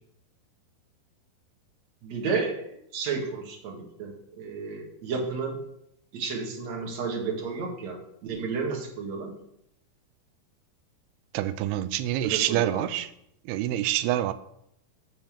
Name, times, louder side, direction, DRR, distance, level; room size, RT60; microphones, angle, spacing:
voice 1, 2.0-2.6 2.9-5.6 6.1-9.3 12.2-12.9, right 4 dB, 50° right, 0 dB, 2.6 m, -32 dB
voice 2, 11.3-13.1 13.5-14.3, right 13 dB, 85° right, 12 dB, 2.5 m, -26 dB
11.0 x 4.4 x 7.2 m, 0.76 s
omnidirectional pair, 4.6 m